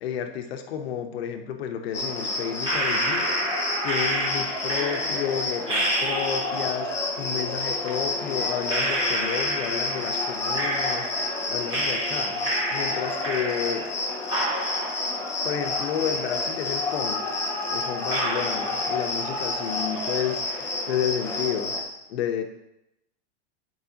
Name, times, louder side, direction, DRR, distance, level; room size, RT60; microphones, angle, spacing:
voice 1, 0.0-3.3 3.8-13.9 15.4-17.2 17.7-21.7 22.1-22.4, left 8 dB, 65° left, 6 dB, 0.9 m, -31 dB
Cricket, 1.9-21.8, left 2 dB, 10° left, 0.4 m, -29 dB
sound 1, 2.6-6.8 7.8-7.9 8.7-11.4 11.7-14.0 14.3-16.3 16.7-16.8 17.4-17.5 18.1-19.4 19.7-20.2, right 1 dB, 15° right, 1.1 m, -30 dB
10.5 x 4.8 x 2.8 m, 0.86 s
supercardioid pair, 165°, 33 cm